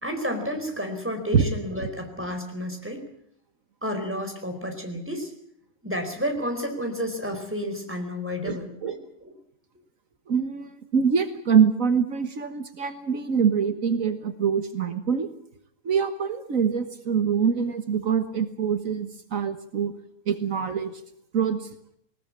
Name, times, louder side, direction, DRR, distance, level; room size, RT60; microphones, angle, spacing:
voice 1, 0.0-3.1 3.8-5.3 5.8-9.3, equal, 10° right, 4 dB, 4.5 m, -31 dB
voice 2, 8.4-9.0 10.3-15.3 15.9-19.9 20.3-21.0 21.3-21.7, right 6 dB, 70° right, 10 dB, 1.7 m, -24 dB
19.5 x 19.5 x 8.6 m, 0.70 s
omnidirectional pair, 1.5 m